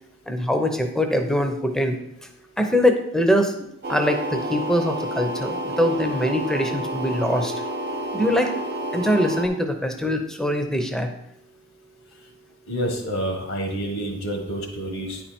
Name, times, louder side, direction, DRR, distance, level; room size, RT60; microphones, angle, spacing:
voice 1, 0.3-2.0 2.6-7.5 8.1-8.6 8.9-11.1, equal, 5° left, 5 dB, 0.7 m, -23 dB
sound 1, 3.8-9.5, right 1 dB, 50° right, 0.9 m, -29 dB
voice 2, 12.7-15.2, right 1 dB, 75° left, 2 dB, 1.6 m, -28 dB
9.7 x 4.4 x 4.3 m, 0.82 s
head